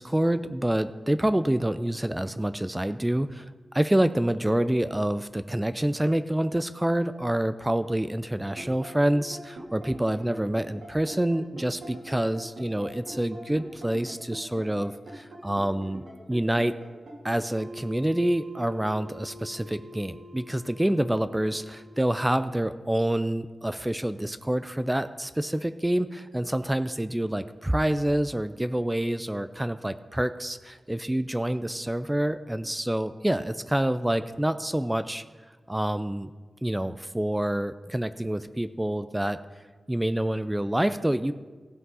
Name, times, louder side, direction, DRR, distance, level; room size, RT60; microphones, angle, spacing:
voice 1, 0.0-16.0 16.3-16.8 17.2-35.2 35.7-36.3 36.6-39.4 39.9-41.3, right 1 dB, 10° right, 12 dB, 0.4 m, -27 dB
sound 1, 8.4-22.4, right 1 dB, 75° right, 3.2 m, -44 dB
16.0 x 5.9 x 5.5 m, 1.4 s
wide cardioid pair, 130°, 0 cm